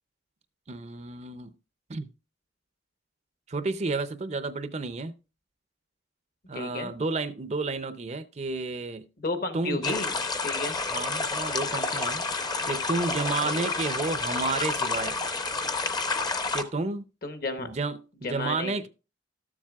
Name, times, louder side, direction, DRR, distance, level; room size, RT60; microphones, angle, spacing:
voice 1, 0.7-1.5 1.9-2.1 3.5-5.1 6.5-9.1 9.5-10.0 10.9-12.2 12.7-15.2 16.5-17.0 17.6-18.9, right 3 dB, 35° right, 0.5 m, -31 dB
voice 2, 6.5-6.9 9.2-10.2 10.4-10.8 13.4-13.7 17.2-17.7 18.2-18.8, left 3 dB, 55° left, 1.1 m, -32 dB
sound 1, 9.8-16.6, left 3 dB, 20° left, 0.7 m, -29 dB
13.0 x 7.3 x 2.4 m
head